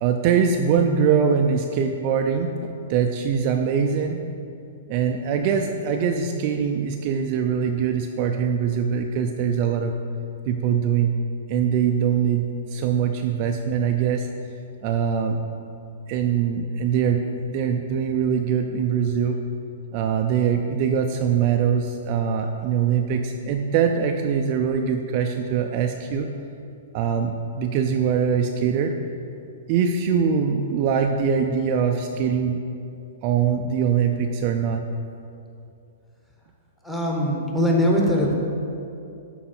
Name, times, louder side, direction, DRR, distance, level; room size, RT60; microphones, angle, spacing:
voice 1, 0.0-2.5 2.9-4.2 4.9-9.9 10.5-11.2 11.5-14.3 14.8-15.4 16.1-17.2 17.5-19.4 19.9-26.3 26.9-28.9 29.7-32.6 33.2-34.8, right 7 dB, 30° right, 3 dB, 0.4 m, -22 dB
voice 2, 36.8-38.3, equal, 5° left, -2 dB, 0.9 m, -21 dB
12.5 x 4.6 x 4.4 m, 2.6 s
hypercardioid pair, 170°, 0 cm